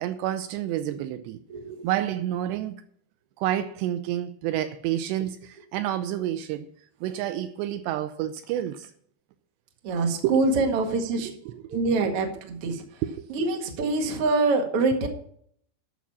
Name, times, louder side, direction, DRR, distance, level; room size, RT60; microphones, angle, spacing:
voice 1, 0.0-1.4 1.8-2.8 3.4-6.7 7.0-8.9 10.2-10.5 11.5-11.6 12.0-12.2 13.0-13.3, right 12 dB, 80° right, 2.6 m, -29 dB
voice 2, 9.8-11.3 11.7-12.8 13.3-15.1, right 3 dB, 50° right, 1.9 m, -25 dB
11.5 x 6.3 x 7.0 m
omnidirectional pair, 5.1 m